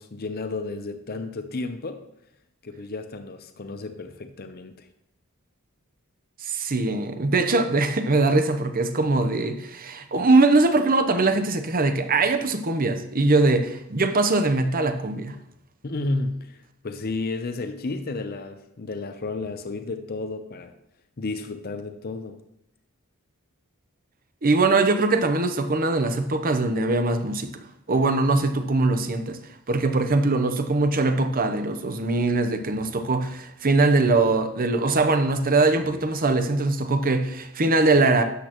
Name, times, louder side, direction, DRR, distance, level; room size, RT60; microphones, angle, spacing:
voice 1, 0.0-2.0 2.6-4.9 15.8-20.7 21.2-22.4, left 3 dB, 45° left, 8 dB, 0.6 m, -32 dB
voice 2, 6.4-15.3 24.4-27.6 27.9-29.4 29.7-38.2, right 3 dB, 40° right, 9 dB, 0.8 m, -22 dB
12.5 x 8.3 x 3.0 m, 0.82 s
head